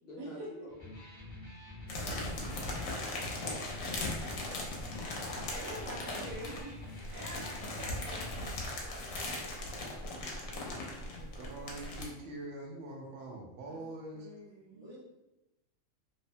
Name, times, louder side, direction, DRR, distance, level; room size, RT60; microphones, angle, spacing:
voice 1, 0.0-0.9 1.9-4.8 14.5-14.6, left 1 dB, 60° left, -2 dB, 0.6 m, -52 dB
Electric guitar, 0.7-8.7, left 2 dB, 20° left, 0.7 m, -47 dB
sound 1, 1.9-12.0, left 2 dB, 75° left, 1.0 m, -39 dB
voice 2, 2.0-2.6 5.5-9.6 11.5-11.7 13.7-13.8 14.1-14.9, right 1 dB, 75° right, -5 dB, 1.1 m, -47 dB
voice 3, 6.0-6.5 10.1-11.4 12.2-12.5 14.7-15.0, right 1 dB, 25° right, -8 dB, 0.7 m, -54 dB
voice 4, 11.4-14.3, right 2 dB, 60° right, 0 dB, 0.7 m, -44 dB
2.7 x 2.1 x 2.6 m, 0.95 s
omnidirectional pair, 1.4 m